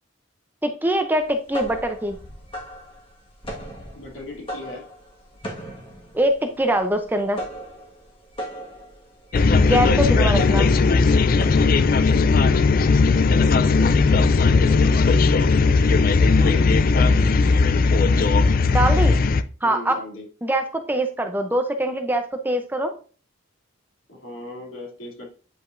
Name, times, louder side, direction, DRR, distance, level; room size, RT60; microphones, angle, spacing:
voice 1, 0.6-2.2 6.1-7.4 9.6-10.7 18.7-19.1 19.6-20.0 20.4-22.9, right 1 dB, 10° right, 6 dB, 0.6 m, -23 dB
sound 1, 1.2-12.0, equal, 25° left, 1.6 m, -37 dB
voice 2, 3.9-4.8 13.3-14.8 16.3-17.4 18.1-18.5 19.6-20.2 24.1-25.3, left 2 dB, 80° left, -2 dB, 2.7 m, -37 dB
sound 2, 9.3-19.4, left 4 dB, 45° left, 0.4 m, -17 dB
9.1 x 5.2 x 2.6 m, 0.38 s
head